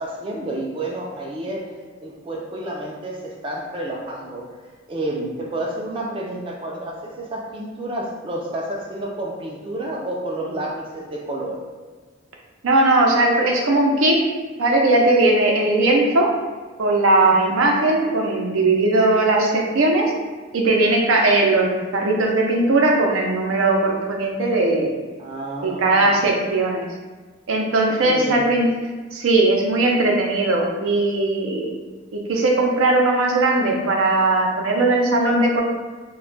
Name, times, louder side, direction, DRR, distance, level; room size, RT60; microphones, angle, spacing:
voice 1, 0.0-1.7 2.0-4.5 4.9-11.6 17.2-17.5 25.2-26.2 28.0-28.5, right 1 dB, 25° right, -2 dB, 0.3 m, -30 dB
voice 2, 12.6-14.3 14.6-16.3 16.8-20.1 20.5-24.9 25.6-26.9 27.5-28.7 29.1-31.8 32.1-35.6, right 2 dB, 90° right, 0 dB, 0.5 m, -18 dB
2.2 x 2.1 x 3.8 m, 1.4 s
head